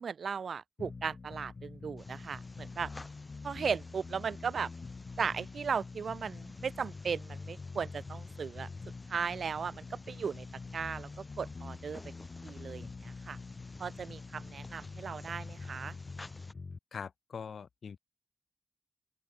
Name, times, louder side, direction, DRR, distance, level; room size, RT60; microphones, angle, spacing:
voice 1, 0.0-2.9 3.4-4.7 5.2-8.7 9.1-10.5 10.7-11.1 11.4-12.0 12.4-13.4 13.8-16.0, right 6 dB, 65° right, 0.4 m, -36 dB
sound 1, 0.8-16.8, left 4 dB, 35° left, 1.9 m, -46 dB
sound 2, 2.0-16.5, left 2 dB, 15° left, 1.0 m, -54 dB
voice 2, 16.9-18.0, left 6 dB, 70° left, 2.3 m, -42 dB
open air
wide cardioid pair, 170°, 0 cm